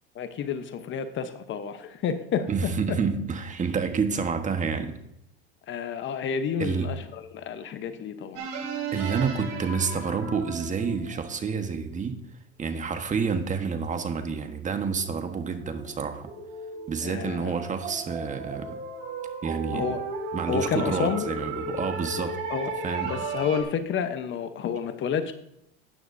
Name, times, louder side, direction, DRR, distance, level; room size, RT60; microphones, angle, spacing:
voice 1, 0.1-2.5 2.9-3.0 5.7-8.5 17.0-17.5 19.7-20.0 20.5-21.2 22.5-22.7 23.0-25.3, left 7 dB, 40° left, 1.0 m, -30 dB
voice 2, 2.5-5.0 6.6-6.9 8.9-12.2 12.6-16.3 16.9-18.8 19.4-19.9 20.3-22.4 22.8-23.1, right 5 dB, 25° right, 1.4 m, -29 dB
sound 1, 8.4-11.8 13.5-13.6 14.2-23.6, right 4 dB, 55° right, 3.2 m, -36 dB
13.0 x 9.3 x 2.7 m
hypercardioid pair, 95°, 30 cm